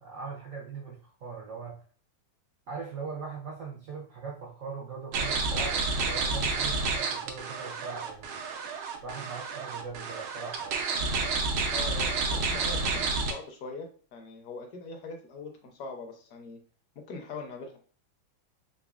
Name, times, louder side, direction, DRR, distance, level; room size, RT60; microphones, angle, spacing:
voice 1, 0.0-1.8 2.7-8.4 9.0-10.8, right 5 dB, 70° right, -2 dB, 0.7 m, -40 dB
sound 1, 5.1-13.3, right 4 dB, 90° right, 1.5 m, -30 dB
voice 2, 11.7-16.6 17.0-17.7, left 3 dB, 65° left, 3 dB, 1.0 m, -42 dB
4.0 x 3.1 x 2.4 m, 0.41 s
omnidirectional pair, 2.2 m